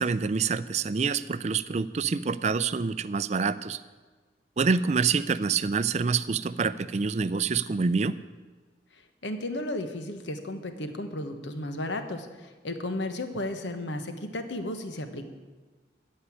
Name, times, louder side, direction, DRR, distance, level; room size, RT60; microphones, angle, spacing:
voice 1, 0.0-3.8 4.6-8.2, right 5 dB, 35° right, 14 dB, 0.4 m, -26 dB
voice 2, 8.9-15.2, left 1 dB, 80° left, 7 dB, 1.3 m, -34 dB
14.5 x 5.5 x 9.7 m, 1.4 s
head